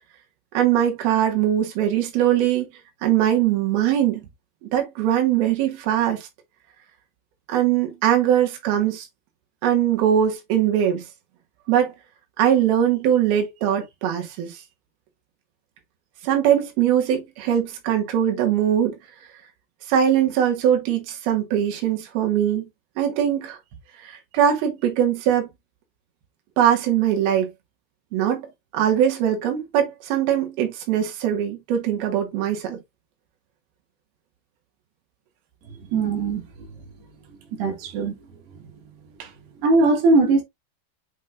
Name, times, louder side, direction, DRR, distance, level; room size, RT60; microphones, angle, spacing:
voice 1, 0.5-2.7 3.0-4.2 4.6-6.3 7.5-9.1 9.6-11.0 11.7-11.9 12.4-14.6 16.2-19.0 19.9-22.6 23.0-23.6 24.0-25.5 26.6-27.5 28.1-28.5 28.7-32.8 39.2-39.3, right 10 dB, 70° right, 3.6 m, -21 dB
voice 2, 35.9-36.4 37.6-38.1 39.6-40.4, right 3 dB, 90° right, 3.9 m, -19 dB
7.5 x 5.2 x 2.5 m
omnidirectional pair, 4.7 m